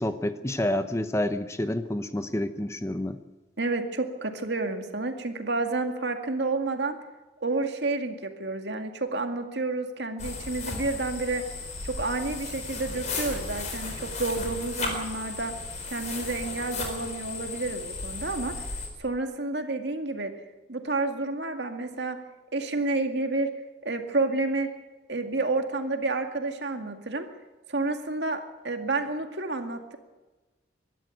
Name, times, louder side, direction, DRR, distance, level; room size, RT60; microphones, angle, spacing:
voice 1, 0.0-3.2, left 1 dB, 15° left, 10 dB, 0.8 m, -28 dB
voice 2, 3.6-7.0 7.4-11.4 11.8-15.5 15.9-18.5 19.0-20.3 20.7-22.2 22.5-23.5 23.8-24.7 25.1-27.3 27.7-30.0, right 3 dB, 65° right, 5 dB, 2.1 m, -30 dB
sound 1, 10.2-18.9, left 3 dB, 40° left, 4.3 m, -35 dB
23.0 x 12.5 x 9.1 m, 1.2 s
head